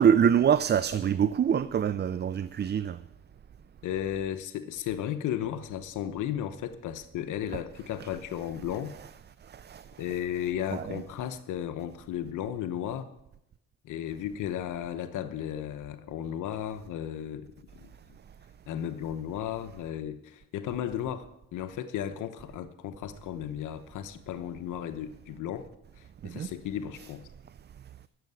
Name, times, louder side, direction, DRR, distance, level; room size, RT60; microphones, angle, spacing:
voice 1, 0.0-3.0 9.5-9.8 10.7-11.0 26.2-26.5, right 8 dB, 35° right, 0.5 m, -25 dB
voice 2, 3.8-8.9 10.0-13.1 13.8-17.5 17.8-17.9 18.7-25.7 26.0-27.3, left 10 dB, 80° left, 0.9 m, -34 dB
13.0 x 7.7 x 9.5 m
cardioid pair, 90°, 30 cm